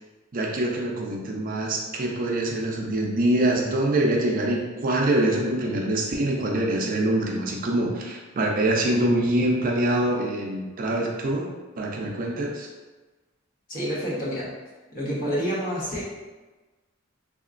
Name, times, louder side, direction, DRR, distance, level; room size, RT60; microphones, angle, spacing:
voice 1, 0.3-11.5 11.8-12.7, right 1 dB, 45° right, -1 dB, 0.5 m, -24 dB
voice 2, 13.7-14.5 14.9-16.0, equal, 45° left, -7 dB, 1.1 m, -28 dB
3.5 x 2.9 x 2.4 m, 1.2 s
head